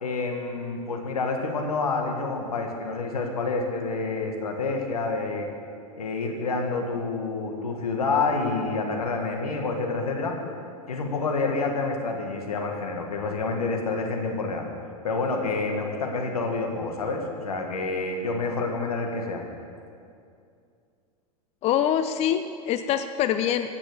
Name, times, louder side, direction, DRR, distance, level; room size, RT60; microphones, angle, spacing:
voice 1, 0.0-5.5 5.9-10.3 10.9-14.6 15.0-19.4, left 3 dB, 80° left, 2 dB, 1.8 m, -28 dB
voice 2, 21.6-23.7, left 10 dB, 35° left, 9 dB, 0.5 m, -24 dB
15.5 x 6.1 x 6.8 m, 2.4 s
hypercardioid pair, 90°, 19 cm